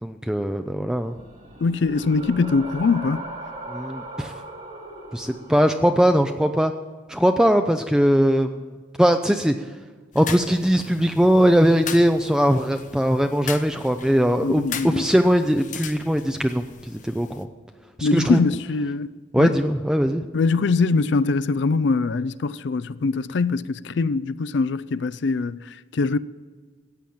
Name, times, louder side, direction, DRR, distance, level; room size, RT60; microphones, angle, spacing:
voice 1, 0.0-1.2 3.7-4.3 5.1-6.7 7.1-8.6 9.0-9.7 10.1-17.5 18.0-18.4 19.3-20.3, equal, 5° right, 0.4 m, -20 dB
sound 1, 1.0-6.1, right 2 dB, 40° right, 2.0 m, -38 dB
voice 2, 1.6-3.2 14.4-15.1 18.0-19.1 19.4-19.6 20.3-26.2, left 4 dB, 65° left, 0.4 m, -23 dB
sound 2, 10.1-17.4, left 7 dB, 40° left, 0.8 m, -38 dB
14.0 x 8.7 x 7.7 m
head